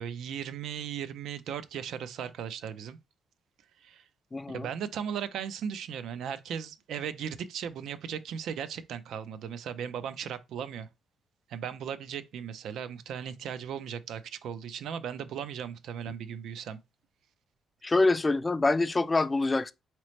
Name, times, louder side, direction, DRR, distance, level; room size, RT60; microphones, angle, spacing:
voice 1, 0.0-3.0 3.8-4.0 4.5-10.9 11.5-16.8, right 8 dB, 75° right, 0.5 m, -37 dB
voice 2, 4.3-4.7 17.8-19.7, left 3 dB, 25° left, 0.3 m, -25 dB
4.0 x 2.9 x 3.1 m
cardioid pair, 90°, 0 cm